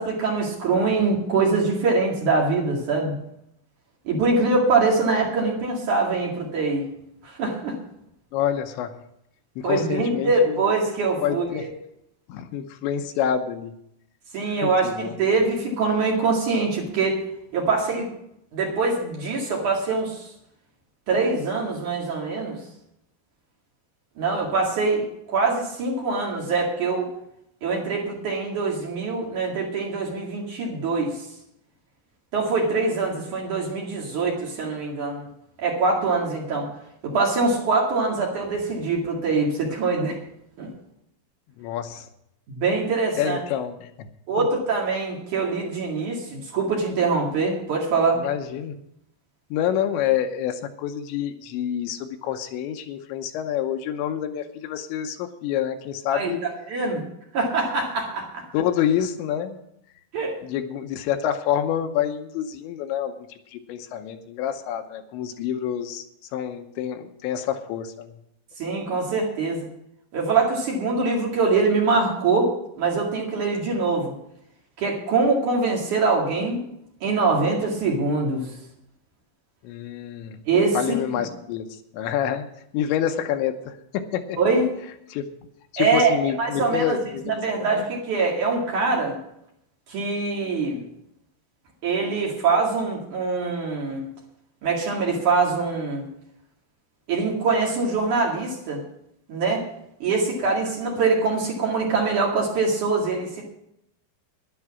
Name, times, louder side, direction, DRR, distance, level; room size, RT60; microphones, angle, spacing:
voice 1, 0.0-3.1 4.0-6.9 7.2-7.8 9.6-11.7 14.3-17.2 17.5-18.1 18.5-20.2 21.1-22.6 24.2-27.1 27.6-31.2 32.3-35.3 35.6-36.7 37.0-40.2 40.6-40.7 42.5-43.4 44.3-48.2 56.1-57.0 57.3-58.4 60.1-60.4 68.6-69.7 70.1-72.5 72.8-74.1 74.8-76.6 77.0-78.5 80.5-80.8 84.4-84.7 85.8-86.1 86.4-87.0 87.2-89.2 89.9-90.8 91.8-94.1 94.6-96.1 97.1-98.8 99.3-99.6 100.0-103.4, right 3 dB, 50° right, -1 dB, 3.1 m, -23 dB
voice 2, 8.3-9.0 9.6-10.6 11.2-11.7 12.3-13.7 14.4-15.2 41.6-42.1 43.2-44.1 44.4-44.5 48.2-48.8 49.5-56.4 58.5-59.6 60.4-66.0 66.3-68.1 79.6-80.4 80.7-82.5 82.7-84.4 85.1-85.3 85.7-87.4 87.7-87.8, left 9 dB, 85° left, 7 dB, 3.1 m, -27 dB
11.0 x 11.0 x 5.9 m, 0.77 s
omnidirectional pair, 5.3 m